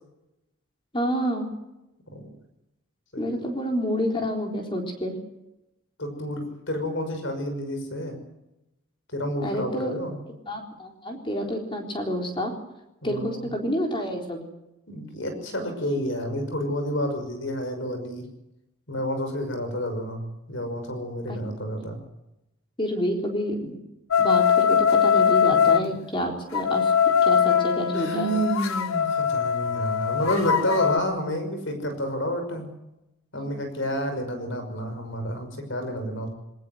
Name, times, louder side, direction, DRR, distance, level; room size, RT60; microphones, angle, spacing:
voice 1, 0.9-1.5 3.2-5.2 9.4-9.9 10.5-12.5 13.0-14.4 21.3-21.4 22.8-23.8 24.2-28.3 33.3-33.5, equal, 25° left, 2 dB, 4.0 m, -28 dB
voice 2, 3.1-3.4 6.0-8.2 9.1-10.2 13.0-13.5 14.9-18.3 18.9-22.0 25.6-26.0 27.9-32.7 33.3-36.3, equal, 60° left, 7 dB, 5.9 m, -30 dB
sound 1, 24.1-25.9 26.5-31.0, left 7 dB, 85° left, 0.8 m, -21 dB
22.0 x 19.0 x 7.9 m, 0.92 s
head